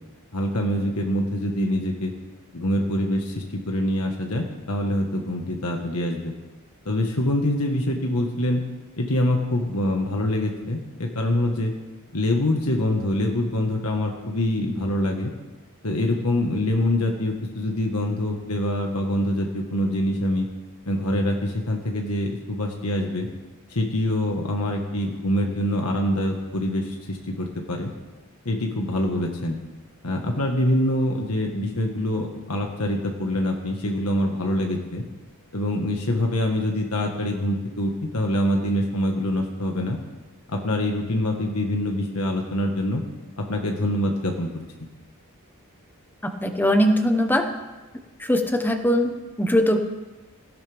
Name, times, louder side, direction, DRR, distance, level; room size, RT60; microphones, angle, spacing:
voice 1, 0.3-2.1 2.5-6.3 6.8-8.6 9.0-11.7 12.1-15.3 15.8-20.5 20.9-23.3 23.7-27.9 28.4-29.6 30.0-35.0 35.5-40.0 40.5-43.0 43.4-44.5, left 1 dB, 75° left, 2 dB, 1.6 m, -25 dB
voice 2, 46.2-47.5 48.2-49.8, equal, 10° left, 5 dB, 1.2 m, -21 dB
17.5 x 16.5 x 3.6 m, 1.2 s
head